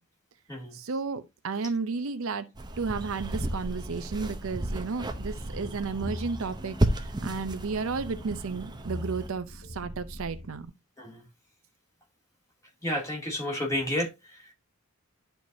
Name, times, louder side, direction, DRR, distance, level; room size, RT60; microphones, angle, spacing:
voice 1, 0.7-2.5 2.8-10.7, right 4 dB, 65° right, 0.6 m, -33 dB
sound 1, 2.6-9.3, right 1 dB, 20° right, 0.6 m, -33 dB
sound 2, 3.9-10.7, left 1 dB, 60° left, 1.8 m, -42 dB
voice 2, 12.8-14.5, left 1 dB, 15° left, 2.5 m, -31 dB
11.0 x 4.5 x 2.7 m
head